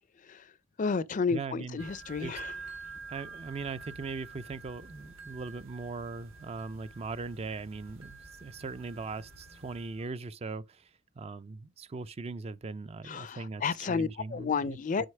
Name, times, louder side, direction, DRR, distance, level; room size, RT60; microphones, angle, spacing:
voice 1, 0.2-0.5 0.8-2.5 13.0-15.1, left 5 dB, 40° left, 0.4 m, -32 dB
voice 2, 1.3-1.8 2.2-2.4 3.1-10.9 11.2-13.6 13.9-15.1, right 4 dB, 30° right, 0.4 m, -39 dB
sound 1, 1.8-10.1, right 4 dB, 85° right, 2.7 m, -48 dB
6.4 x 4.9 x 4.6 m
head